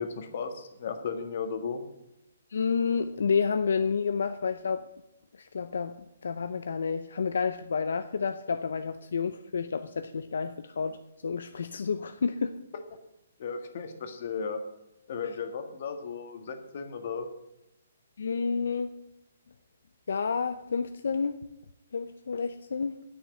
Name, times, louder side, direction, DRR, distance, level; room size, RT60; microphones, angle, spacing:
voice 1, 0.0-1.8 13.4-14.6 15.1-17.3, left 5 dB, 45° left, 7 dB, 1.6 m, -35 dB
voice 2, 2.5-4.9 5.4-5.9 6.2-11.0 11.2-12.6 18.2-18.9 20.1-21.4 21.9-23.0, left 5 dB, 75° left, 10 dB, 0.7 m, -30 dB
9.8 x 6.5 x 8.5 m, 0.91 s
hypercardioid pair, 165°, 0 cm